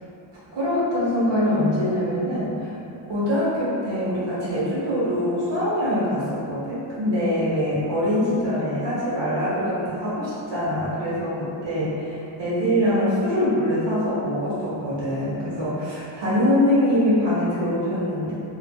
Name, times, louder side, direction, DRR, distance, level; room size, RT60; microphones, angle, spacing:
voice 1, 0.5-2.7 3.1-18.3, left 1 dB, 60° right, -10 dB, 1.2 m, -23 dB
3.0 x 2.4 x 2.4 m, 2.6 s
wide cardioid pair, 175°, 49 cm